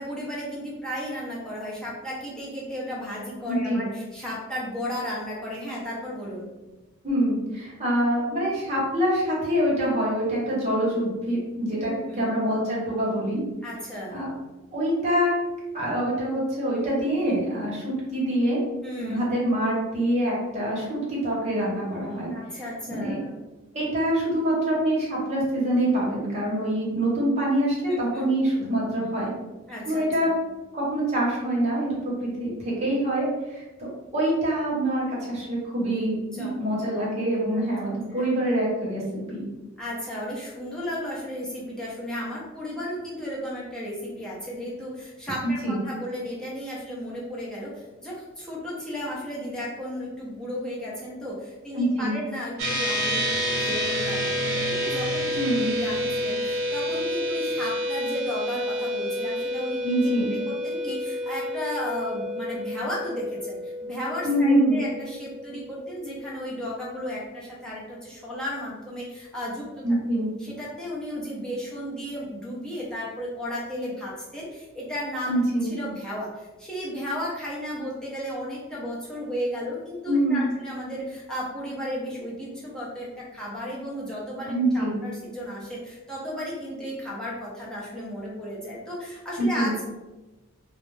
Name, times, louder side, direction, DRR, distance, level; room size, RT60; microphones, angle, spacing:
voice 1, 0.0-6.5 11.7-12.3 13.6-14.2 18.8-19.2 22.3-23.4 27.9-28.3 29.7-30.3 36.4-36.6 37.5-37.6 38.1-38.3 39.8-60.1 60.5-69.8 70.4-75.4 75.7-89.8, equal, 5° left, -7 dB, 0.6 m, -34 dB
voice 2, 3.5-3.8 7.0-13.4 14.1-14.3 14.7-15.3 15.7-18.6 19.0-23.2 23.7-29.3 29.8-30.3 30.7-39.5 45.4-45.8 51.7-52.2 55.4-55.7 59.8-60.3 64.2-64.8 69.8-70.3 75.3-75.7 80.0-80.5 84.4-85.0 89.4-89.7, right 1 dB, 30° right, -6 dB, 0.9 m, -25 dB
sound 1, 52.6-66.2, equal, 75° right, 0.6 m, -29 dB
2.3 x 2.0 x 3.1 m, 1.1 s
head